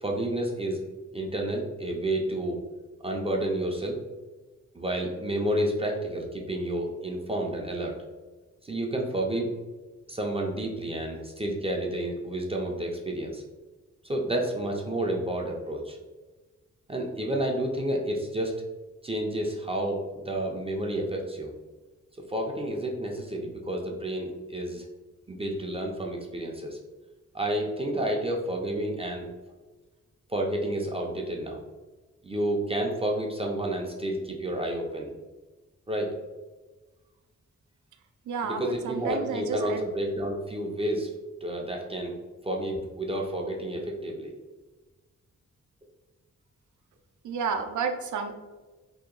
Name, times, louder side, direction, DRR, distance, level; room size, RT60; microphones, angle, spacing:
voice 1, 0.0-0.8 1.1-2.6 3.0-4.0 4.7-7.9 8.6-9.5 10.1-13.4 14.0-16.0 16.9-18.6 19.0-21.5 22.3-24.8 25.3-26.8 27.3-29.3 30.3-31.6 32.2-35.1 35.9-36.1 38.4-41.1 41.4-42.2 42.4-44.3, right 1 dB, 20° right, 0 dB, 0.4 m, -30 dB
voice 2, 38.3-39.8 47.2-48.3, right 5 dB, 75° right, 5 dB, 0.5 m, -31 dB
2.8 x 2.7 x 3.7 m, 1.2 s
wide cardioid pair, 160°, 30 cm